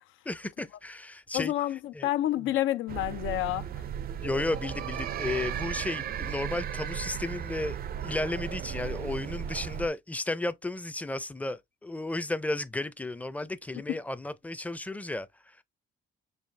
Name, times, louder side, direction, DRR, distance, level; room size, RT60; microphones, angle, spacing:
voice 1, 0.3-1.5 1.9-2.1 4.2-7.8 8.0-15.6, left 2 dB, 5° left, 0.4 m, -33 dB
voice 2, 1.3-3.8 13.9-14.0, left 14 dB, 80° left, 0.4 m, -29 dB
sound 1, 2.9-9.9, right 9 dB, 50° right, 0.4 m, -35 dB
5.6 x 2.3 x 3.2 m
cardioid pair, 90°, 20 cm